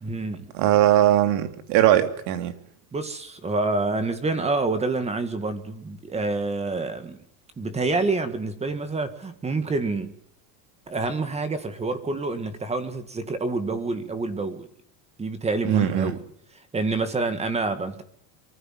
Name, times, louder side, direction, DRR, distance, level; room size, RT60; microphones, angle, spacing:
voice 1, 0.0-0.5 2.9-7.2 7.6-10.1 10.9-14.7 15.2-16.2 16.5-18.0, right 3 dB, 15° right, 1.9 m, -27 dB
voice 2, 0.5-2.5 15.6-16.1, right 12 dB, 60° right, 3.0 m, -20 dB
24.0 x 15.0 x 9.2 m
cardioid pair, 165°, 45 cm